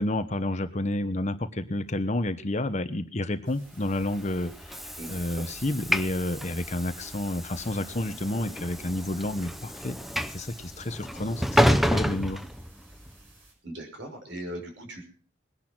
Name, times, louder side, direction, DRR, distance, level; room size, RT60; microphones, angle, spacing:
voice 1, 0.0-10.0 10.3-12.4, left 1 dB, 35° left, 10 dB, 1.0 m, -30 dB
sound 1, 3.4-13.5, right 3 dB, 80° right, 7.1 m, -58 dB
Train / Sliding door, 3.9-13.1, equal, ahead, 0.7 m, -30 dB
voice 2, 5.0-5.4 13.6-15.0, right 1 dB, 60° right, 4 dB, 5.8 m, -39 dB
20.5 x 10.5 x 6.0 m, 0.43 s
head